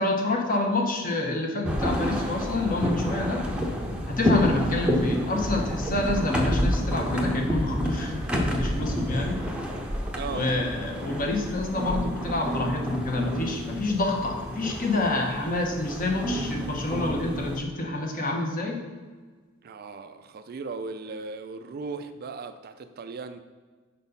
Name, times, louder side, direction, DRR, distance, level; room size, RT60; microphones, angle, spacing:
voice 1, 0.0-3.5 4.1-9.4 10.3-18.8, left 2 dB, 40° left, 2 dB, 1.0 m, -27 dB
sound 1, 1.6-17.6, equal, 5° right, 0.7 m, -29 dB
voice 2, 10.2-10.5 19.6-23.4, right 4 dB, 50° right, 9 dB, 0.4 m, -37 dB
5.7 x 4.1 x 5.3 m, 1.4 s
head